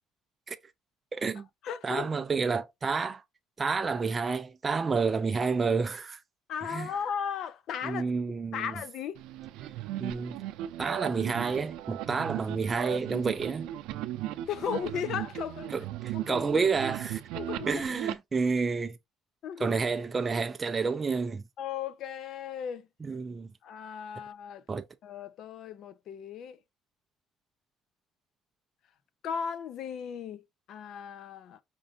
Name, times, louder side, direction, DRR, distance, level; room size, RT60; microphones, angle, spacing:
voice 1, 1.1-1.5 1.8-3.2 3.6-6.2 6.6-6.9 7.8-8.7 10.0-10.4 10.8-13.7 15.7-17.2 17.7-19.0 19.6-21.4 23.0-23.5 24.7-24.8, right 4 dB, 20° right, 0.4 m, -29 dB
voice 2, 1.6-2.1 6.5-8.1 8.5-9.2 14.4-15.7 16.1-16.4 17.3-17.8 19.4-19.7 21.6-22.9 23.6-24.6 25.0-26.6 29.2-30.4 30.7-31.6, left 8 dB, 50° left, 0.5 m, -36 dB
sound 1, 9.1-18.1, right 13 dB, 80° right, 0.5 m, -37 dB
5.2 x 2.5 x 3.5 m
cardioid pair, 160°, 0 cm